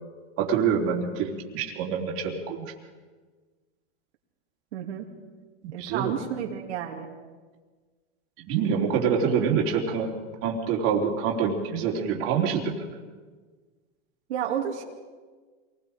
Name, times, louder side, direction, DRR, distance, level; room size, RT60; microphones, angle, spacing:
voice 1, 0.4-2.7 5.6-6.1 8.5-12.9, right 6 dB, 40° right, -1 dB, 3.3 m, -26 dB
voice 2, 4.7-5.1 5.7-7.1 14.3-14.8, right 9 dB, 75° right, 0 dB, 2.7 m, -31 dB
27.0 x 19.5 x 5.1 m, 1.4 s
supercardioid pair, 145°, 34 cm